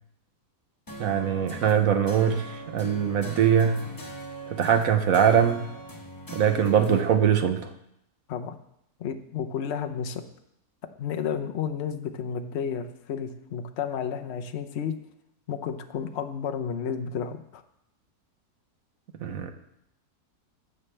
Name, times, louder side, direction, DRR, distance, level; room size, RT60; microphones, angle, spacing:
sound 1, 0.9-7.0, equal, 15° left, 1.0 m, -41 dB
voice 1, 1.0-3.8 4.5-5.7 6.3-7.7 19.2-19.5, right 8 dB, 60° right, 7 dB, 1.1 m, -22 dB
voice 2, 9.0-10.2 11.0-14.9 15.5-17.6, left 7 dB, 55° left, 6 dB, 0.8 m, -32 dB
15.0 x 7.2 x 3.3 m, 0.79 s
omnidirectional pair, 1.8 m